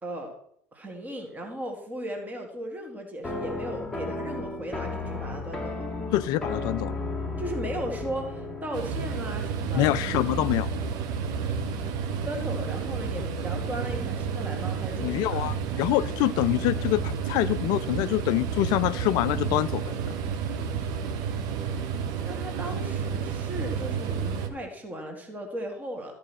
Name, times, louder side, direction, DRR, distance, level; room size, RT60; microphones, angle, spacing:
voice 1, 0.0-0.3 0.7-5.8 7.4-10.0 12.2-15.5 22.2-26.2, right 1 dB, 20° right, 2 dB, 2.0 m, -36 dB
sound 1, 3.2-8.8, left 2 dB, 5° left, 2.0 m, -33 dB
voice 2, 6.1-7.0 9.7-10.7 15.0-19.9, left 15 dB, 50° left, 16 dB, 0.3 m, -25 dB
sound 2, 8.7-24.5, right 6 dB, 50° right, 1.1 m, -31 dB
13.0 x 4.9 x 6.2 m, 0.68 s
figure-of-eight pair, 65°, 9 cm